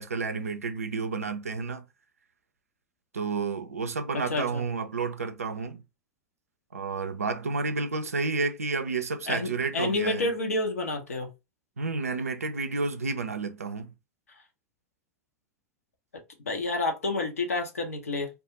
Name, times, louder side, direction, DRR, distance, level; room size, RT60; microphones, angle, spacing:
voice 1, 0.0-1.8 3.1-5.8 6.7-10.3 11.8-13.9, right 4 dB, 85° right, 0.4 m, -31 dB
voice 2, 4.3-4.6 9.3-11.3 16.5-18.3, left 2 dB, 80° left, 0.6 m, -29 dB
2.3 x 2.3 x 2.8 m
figure-of-eight pair, 90°, 8 cm